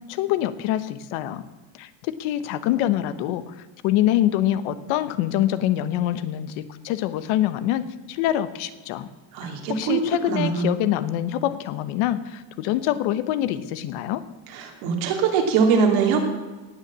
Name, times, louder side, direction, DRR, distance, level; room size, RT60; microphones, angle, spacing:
voice 1, 0.1-1.4 1.7-9.1 9.4-14.2, left 13 dB, 85° left, 13 dB, 1.1 m, -25 dB
voice 2, 9.3-10.0 10.3-10.7 14.5-16.2, right 5 dB, 85° right, 2 dB, 3.0 m, -22 dB
18.5 x 6.9 x 7.4 m, 1.3 s
cardioid pair, 145°, 47 cm